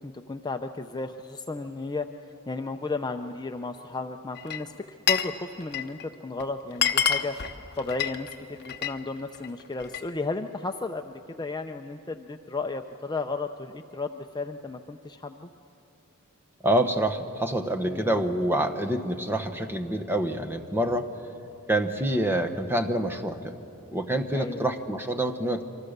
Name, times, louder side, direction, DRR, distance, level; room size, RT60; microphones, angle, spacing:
voice 1, 0.0-2.1 2.5-4.7 5.1-15.5 17.8-18.2 24.3-24.6, left 3 dB, 20° left, 6 dB, 0.5 m, -34 dB
Glass, 4.4-5.4 5.6-6.0 6.4-6.5 6.7-9.0 9.3-10.1, left 8 dB, 50° left, 0.9 m, -27 dB
voice 2, 16.6-21.1 21.7-23.5 23.9-25.6, right 1 dB, 10° right, 5 dB, 1.1 m, -26 dB
28.0 x 24.5 x 6.7 m, 2.8 s
head